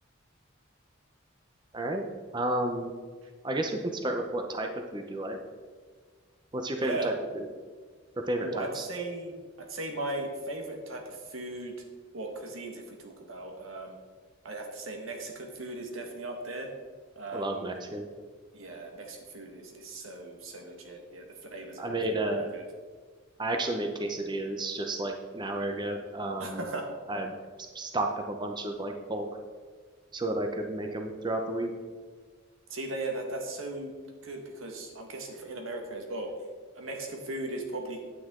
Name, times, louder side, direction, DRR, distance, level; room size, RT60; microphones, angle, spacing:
voice 1, 2.3-2.9 3.4-5.4 6.5-7.4 8.2-8.9 17.3-18.1 21.8-22.5 23.4-26.6 27.1-27.3 27.7-29.3 30.1-31.7, right 1 dB, 20° right, 4 dB, 0.7 m, -32 dB
voice 2, 6.8-7.2 8.4-11.7 12.1-14.0 14.4-16.7 17.1-17.8 18.5-22.6 26.4-26.9 32.7-33.9 34.2-36.3 36.7-38.0, right 2 dB, 85° right, 2 dB, 1.6 m, -38 dB
9.6 x 9.2 x 3.7 m, 1.5 s
head